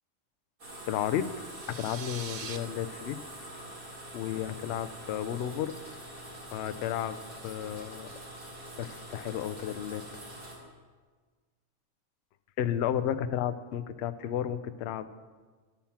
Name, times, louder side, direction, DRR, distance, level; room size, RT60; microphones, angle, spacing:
sound 1, 0.6-10.5, right 1 dB, 85° right, 3.1 m, -45 dB
voice 1, 0.9-1.3 1.7-3.2 4.1-5.7 6.5-7.2 7.4-8.1 8.8-10.0 12.6-15.1, left 10 dB, 65° left, 11 dB, 0.7 m, -32 dB
sound 2, 1.3-2.6, right 6 dB, 50° right, 0.6 m, -43 dB
11.5 x 5.8 x 7.1 m, 1.4 s
omnidirectional pair, 1.5 m